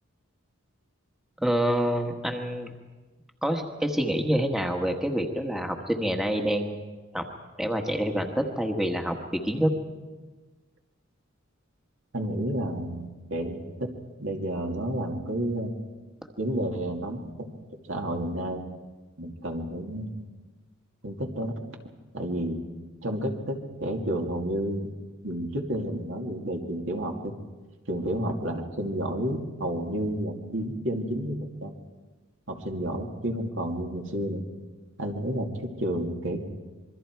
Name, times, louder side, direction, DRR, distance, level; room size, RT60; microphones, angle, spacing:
voice 1, 1.4-2.7 3.4-6.8 7.1-7.3 7.6-9.7, equal, ahead, 3 dB, 1.3 m, -27 dB
voice 2, 12.1-13.9 14.2-15.7 16.4-17.5 17.9-18.6 19.2-20.2 21.0-21.6 22.1-22.6 23.0-25.0 25.2-27.3 27.9-31.7 32.5-34.5 35.0-36.5, right 1 dB, 65° right, 2 dB, 2.4 m, -31 dB
26.5 x 22.5 x 4.6 m, 1.3 s
head